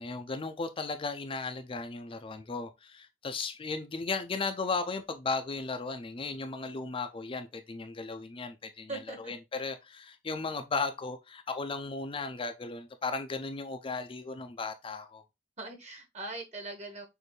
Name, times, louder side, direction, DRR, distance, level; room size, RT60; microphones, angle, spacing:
voice 1, 0.0-15.2, left 4 dB, 30° left, 0.4 m, -36 dB
voice 2, 8.9-9.3 15.6-17.1, right 2 dB, 40° right, 1.4 m, -41 dB
6.5 x 2.6 x 3.1 m
head